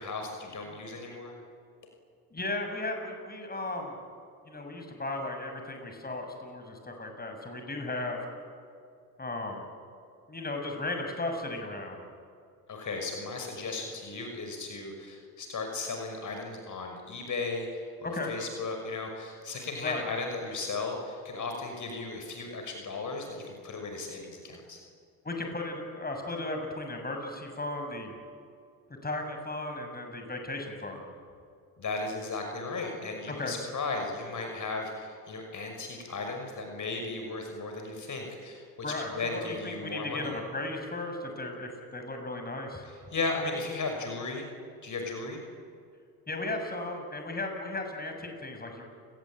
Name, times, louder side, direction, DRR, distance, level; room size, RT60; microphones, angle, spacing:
voice 1, 0.0-1.4 12.7-24.8 31.8-38.6 39.1-40.4 42.8-44.5 44.8-45.4, left 3 dB, 50° left, 3 dB, 6.0 m, -36 dB
voice 2, 2.3-3.9 4.5-8.2 9.2-9.6 10.3-12.1 18.0-18.3 19.8-20.0 25.2-28.1 29.0-31.0 33.4-33.6 38.8-42.8 46.3-48.8, left 2 dB, 25° left, 4 dB, 7.1 m, -35 dB
29.0 x 21.0 x 9.1 m, 2.3 s
supercardioid pair, 70°, 40 cm